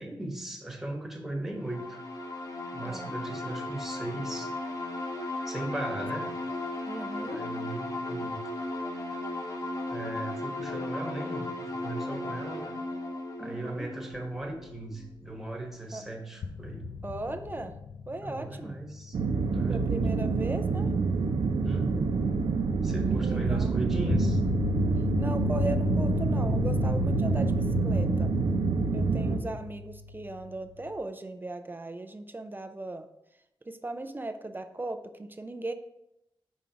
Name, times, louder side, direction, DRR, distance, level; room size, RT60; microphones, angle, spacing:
voice 1, 0.0-2.0 2.7-4.5 5.5-6.3 7.3-8.4 9.9-12.8 13.4-16.9 18.2-19.2 19.5-19.9 21.6-22.2 22.8-24.4, right 2 dB, 5° right, 0 dB, 1.2 m, -37 dB
sound 1, 1.6-15.1, left 2 dB, 40° left, 1.0 m, -36 dB
voice 2, 2.8-3.1 6.8-7.4 13.4-13.9 15.9-16.0 17.0-17.8 18.1-18.8 19.7-20.9 23.2-23.7 25.2-28.3 28.9-33.1 33.7-35.7, right 2 dB, 25° right, 8 dB, 0.4 m, -37 dB
sound 2, 14.3-15.6 15.9-16.0 16.4-20.8 23.9-31.0, left 5 dB, 85° left, 0.4 m, -34 dB
sound 3, 19.1-29.4, right 4 dB, 85° right, 0.6 m, -27 dB
5.1 x 3.7 x 5.7 m, 0.86 s
wide cardioid pair, 105°, 9 cm